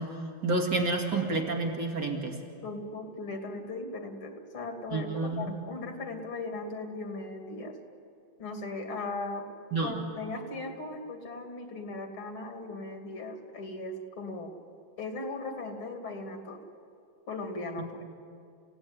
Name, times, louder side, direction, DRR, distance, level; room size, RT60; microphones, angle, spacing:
voice 1, 0.0-2.4 4.9-5.5 9.7-9.9 17.8-17.9, right 3 dB, 55° right, 1 dB, 2.9 m, -30 dB
voice 2, 2.6-7.8 8.4-9.5 9.8-14.5 15.0-16.6 17.3-18.0, left 2 dB, 85° left, 4 dB, 3.4 m, -38 dB
29.5 x 17.0 x 9.7 m, 2.4 s
omnidirectional pair, 2.2 m